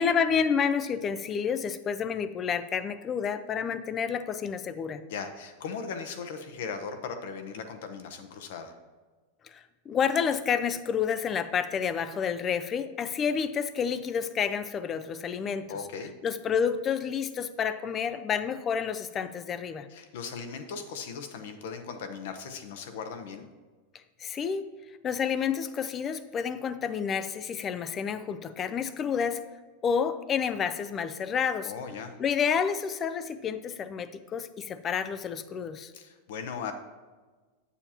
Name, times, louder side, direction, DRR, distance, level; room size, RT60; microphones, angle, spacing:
voice 1, 0.0-5.0 9.4-15.8 16.2-19.9 24.2-24.6 25.0-29.4 29.8-31.7 32.2-35.9, left 7 dB, 25° left, 12 dB, 0.4 m, -29 dB
voice 2, 5.1-8.7 15.7-16.1 19.9-23.5 31.6-32.1 35.9-36.7, left 5 dB, 70° left, 7 dB, 0.9 m, -38 dB
8.5 x 7.0 x 2.9 m, 1.3 s
supercardioid pair, 145°, 0 cm